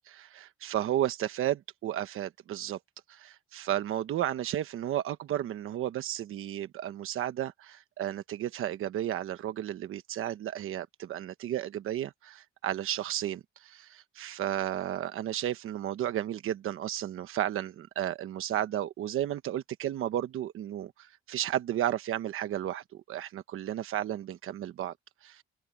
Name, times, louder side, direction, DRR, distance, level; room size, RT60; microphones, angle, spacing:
voice 1, 0.1-2.8 3.1-24.9 25.2-25.4, right 12 dB, 85° right, 1.1 m, -33 dB
open air
cardioid pair, 145°, 21 cm